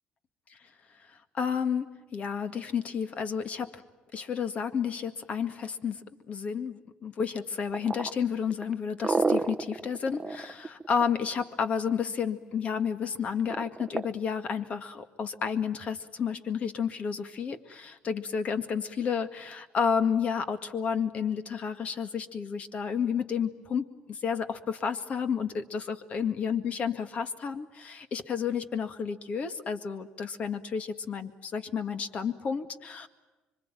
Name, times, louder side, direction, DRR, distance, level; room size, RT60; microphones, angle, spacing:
voice 1, 1.3-3.8 4.1-6.0 6.3-33.1, left 6 dB, 45° left, 9 dB, 1.9 m, -31 dB
sound 1, 7.7-11.4 13.5-14.1, right 3 dB, 15° right, 0.9 m, -29 dB
26.0 x 24.5 x 9.1 m, 1.1 s
cardioid pair, 120°, 3 cm